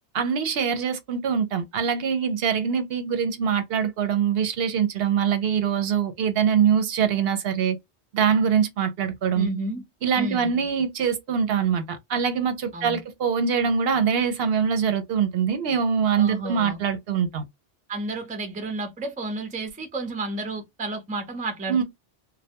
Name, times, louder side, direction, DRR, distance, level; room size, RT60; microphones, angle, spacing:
voice 1, 0.1-7.8 8.1-9.5 10.0-17.4 21.7-21.8, right 7 dB, 65° right, 0.7 m, -23 dB
voice 2, 9.3-9.8 10.1-10.6 12.7-13.0 16.2-16.8 17.9-21.8, right 2 dB, 10° right, 0.4 m, -31 dB
2.2 x 2.1 x 2.7 m
omnidirectional pair, 1.1 m